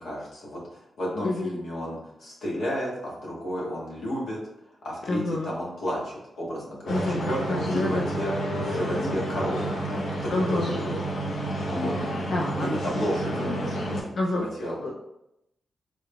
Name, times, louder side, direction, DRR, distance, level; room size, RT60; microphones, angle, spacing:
voice 1, 0.0-4.4 4.8-8.3 8.6-11.1 11.7-12.2 12.6-14.9, equal, 85° left, -4 dB, 1.1 m, -32 dB
voice 2, 1.2-1.6 5.1-5.5 6.9-8.1 10.3-10.7 12.3-12.7 14.2-14.5 14.8-14.9, left 2 dB, 45° left, -1 dB, 0.3 m, -28 dB
sound 1, 6.9-14.0, right 1 dB, 65° left, 0.8 m, -30 dB
3.6 x 2.3 x 3.3 m, 0.83 s
wide cardioid pair, 175°, 0 cm